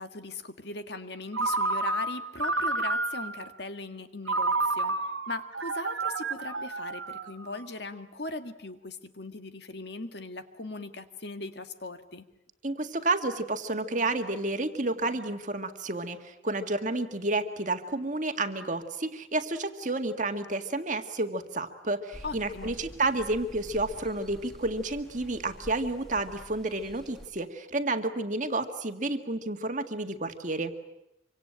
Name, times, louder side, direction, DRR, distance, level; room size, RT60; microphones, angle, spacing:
voice 1, 0.0-5.0 5.3-12.3 22.2-22.7, left 3 dB, 55° left, 8 dB, 1.8 m, -39 dB
Ringtone, 1.3-3.4 4.3-7.6, right 3 dB, 85° right, 2.0 m, -30 dB
voice 2, 12.6-30.7, right 2 dB, 40° right, 6 dB, 1.9 m, -30 dB
sound 1, 22.1-27.3, equal, ahead, 2.3 m, -47 dB
26.0 x 25.0 x 9.0 m, 0.86 s
head